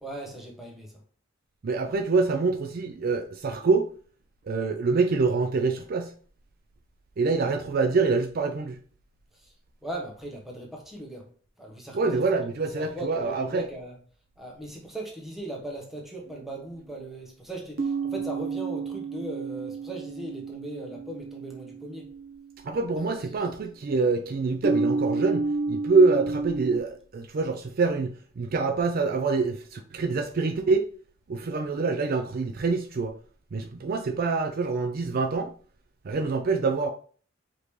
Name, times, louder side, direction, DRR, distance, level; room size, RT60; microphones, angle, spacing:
voice 1, 0.0-0.9 9.4-9.5 9.8-11.2 11.6-12.2 12.7-13.9 14.4-22.1, right 1 dB, ahead, 1.0 m, -38 dB
voice 2, 1.6-3.9 4.5-6.1 7.2-8.8 11.9-13.7 22.6-30.9 31.3-33.1 33.5-35.5 36.0-36.9, right 4 dB, 50° right, 0.4 m, -25 dB
sound 1, 16.3-16.4 17.8-23.2 24.6-26.8, right 3 dB, 90° right, 0.7 m, -31 dB
5.0 x 2.9 x 3.2 m
head